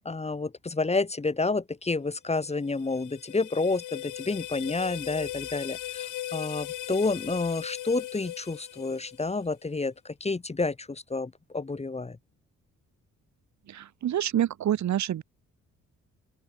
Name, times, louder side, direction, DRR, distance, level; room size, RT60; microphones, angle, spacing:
voice 1, 0.0-12.2, left 3 dB, 20° left, 2.4 m, -29 dB
sound 1, 2.4-9.5, left 13 dB, 80° left, 3.5 m, -39 dB
voice 2, 13.7-15.2, right 11 dB, 70° right, 3.2 m, -27 dB
open air
cardioid pair, 90°, 30 cm